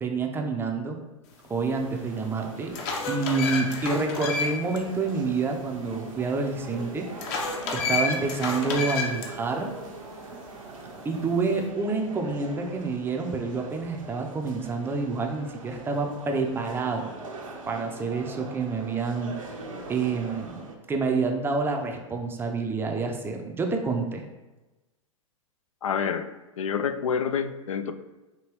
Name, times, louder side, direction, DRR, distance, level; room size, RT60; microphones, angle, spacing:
voice 1, 0.0-1.0 1.4-2.8 3.1-7.1 7.7-9.7 11.0-17.1 17.7-19.3 19.9-20.6 20.9-24.3, right 4 dB, 15° right, 3 dB, 0.5 m, -28 dB
sound 1, 1.7-20.8, right 3 dB, 75° right, 0.8 m, -42 dB
sound 2, 1.8-1.9 2.4-4.8 5.2-5.3 7.2-9.3, left 4 dB, 45° left, 0.8 m, -30 dB
voice 2, 25.8-26.3 26.6-27.9, left 7 dB, 75° left, 9 dB, 0.4 m, -27 dB
4.8 x 2.9 x 3.0 m, 1.1 s
figure-of-eight pair, 105°, 17 cm